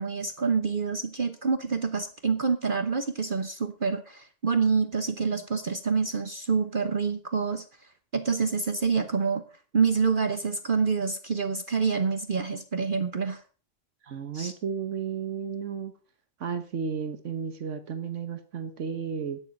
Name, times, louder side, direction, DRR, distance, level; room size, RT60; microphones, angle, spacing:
voice 1, 0.0-9.4 9.7-13.4 14.3-14.5, right 5 dB, 45° right, 9 dB, 1.1 m, -27 dB
voice 2, 14.0-15.9 16.4-19.4, right 6 dB, 80° right, 9 dB, 1.5 m, -33 dB
14.0 x 10.0 x 5.3 m, 0.39 s
omnidirectional pair, 1.2 m